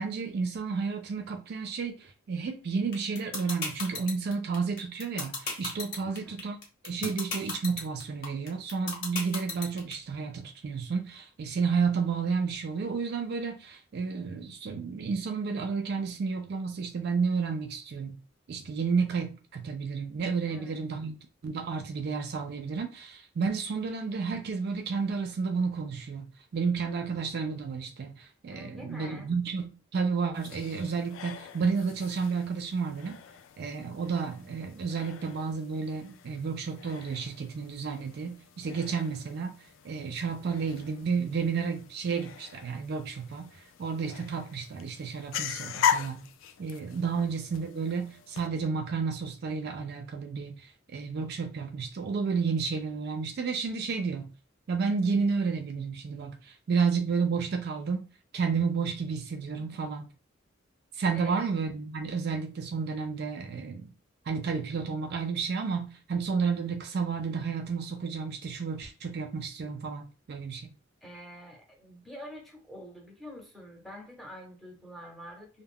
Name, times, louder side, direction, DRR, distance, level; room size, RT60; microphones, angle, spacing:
voice 1, 0.0-6.6 6.8-18.2 18.5-21.2 21.4-26.3 26.5-33.2 33.6-39.6 39.8-43.5 43.8-46.3 46.6-54.3 54.7-58.1 58.3-60.1 61.0-63.9 64.3-70.7, right 5 dB, 55° right, 0.4 m, -31 dB
sound 1, 2.9-9.9, left 4 dB, 55° left, 1.2 m, -34 dB
voice 2, 6.0-6.4 20.4-20.8 28.5-29.3 59.7-59.8 61.1-61.4 71.0-75.6, equal, ahead, 0.8 m, -46 dB
sound 2, 30.3-48.5, left 8 dB, 80° left, 0.3 m, -39 dB
2.2 x 2.0 x 3.5 m
head